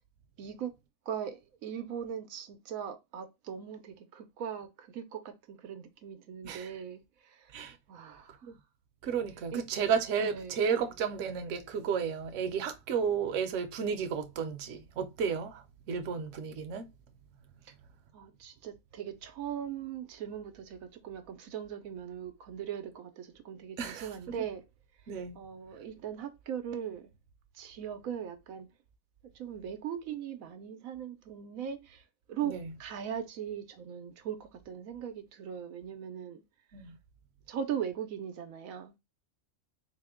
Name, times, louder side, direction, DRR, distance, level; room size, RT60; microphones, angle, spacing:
voice 1, 0.4-0.7 1.1-7.6 7.9-8.4 9.5-9.6 10.2-10.6 17.6-17.7 18.1-24.6 25.3-27.1 27.5-28.7 29.3-32.0 32.3-36.4 37.5-39.0, right 8 dB, 90° right, 1.1 m, -39 dB
voice 2, 9.0-16.9 23.8-24.3 25.1-25.4 32.4-32.7 36.7-37.0, right 6 dB, 65° right, 1.0 m, -33 dB
4.1 x 2.1 x 3.5 m
omnidirectional pair, 1.4 m